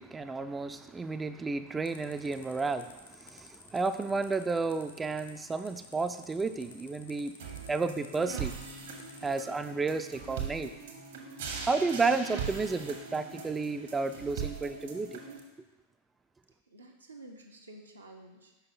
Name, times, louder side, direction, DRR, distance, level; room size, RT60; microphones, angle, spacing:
voice 1, 0.0-7.3 7.7-8.6 9.2-10.7 11.7-15.2, right 4 dB, 15° right, 9 dB, 0.3 m, -32 dB
sound 1, 1.9-9.4, left 5 dB, 70° left, 0.7 m, -53 dB
sound 2, 7.4-15.4, right 6 dB, 60° right, 1.0 m, -40 dB
voice 2, 16.7-18.7, right 2 dB, 80° right, 1 dB, 0.7 m, -51 dB
5.5 x 5.3 x 3.9 m, 1.1 s
figure-of-eight pair, 90°, 0 cm